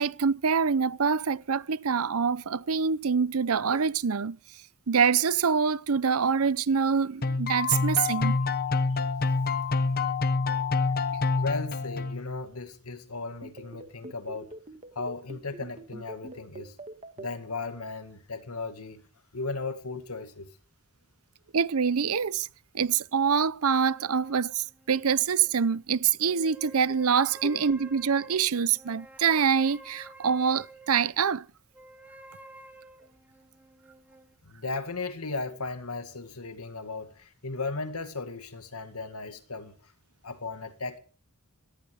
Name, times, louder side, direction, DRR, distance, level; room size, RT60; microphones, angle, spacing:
voice 1, 0.0-4.4 4.9-8.4 21.5-22.5 22.7-31.5, right 6 dB, 75° right, 0.7 m, -25 dB
sound 1, 7.2-12.4, left 4 dB, 45° left, 1.0 m, -27 dB
voice 2, 11.4-14.5 15.0-16.8 17.2-19.0 19.3-20.5 27.5-27.6 34.4-39.9 40.2-41.0, left 3 dB, 85° left, 2.1 m, -36 dB
sound 2, 13.4-17.3, right 2 dB, 30° right, 1.7 m, -43 dB
sound 3, 23.8-25.8 26.2-31.1 31.7-34.3, right 2 dB, 10° right, 2.7 m, -51 dB
18.0 x 14.5 x 5.0 m
head